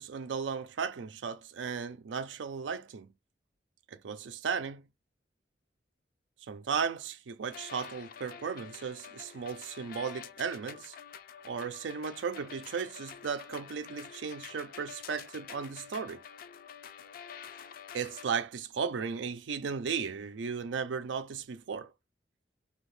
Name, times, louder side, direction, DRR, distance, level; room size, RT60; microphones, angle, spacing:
voice 1, 0.0-3.1 3.9-4.8 6.5-10.9 11.4-16.2 17.9-21.9, right 6 dB, 90° right, 0.4 m, -35 dB
sound 1, 7.4-18.3, left 8 dB, 50° left, 0.3 m, -48 dB
2.7 x 2.3 x 3.2 m
head